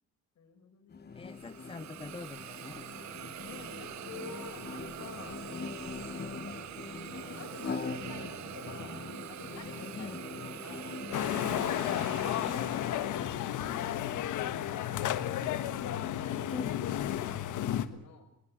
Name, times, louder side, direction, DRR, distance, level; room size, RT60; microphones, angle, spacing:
voice 1, 0.4-1.1 2.5-2.8 3.4-5.4 5.9-6.7 7.1-9.0 9.3-11.8 12.3-16.6 17.1-18.3, left 5 dB, 65° left, 6 dB, 6.4 m, -50 dB
sound 1, 0.9-12.5, left 5 dB, 35° left, 1.2 m, -43 dB
voice 2, 1.1-2.9 9.9-10.2 16.5-16.8, left 4 dB, 20° left, 14 dB, 0.7 m, -43 dB
Hiss, 1.2-13.3, right 12 dB, 65° right, 1.0 m, -44 dB
sound 2, 11.1-17.9, left 11 dB, 80° left, 1.5 m, -32 dB
21.0 x 19.5 x 7.9 m, 0.78 s
cardioid pair, 90°, 30 cm